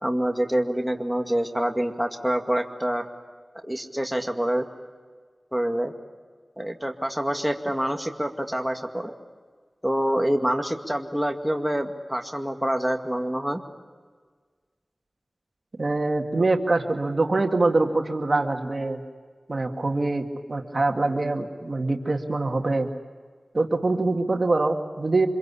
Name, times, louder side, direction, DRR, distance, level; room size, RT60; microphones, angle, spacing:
voice 1, 0.0-3.0 3.6-4.6 5.5-5.9 6.6-9.1 9.8-13.6, equal, 5° right, 3 dB, 2.2 m, -26 dB
voice 2, 15.8-19.0 19.5-22.9 23.5-25.3, right 2 dB, 60° right, 4 dB, 2.0 m, -24 dB
26.0 x 22.5 x 8.5 m, 1.6 s
wide cardioid pair, 45°, 0 cm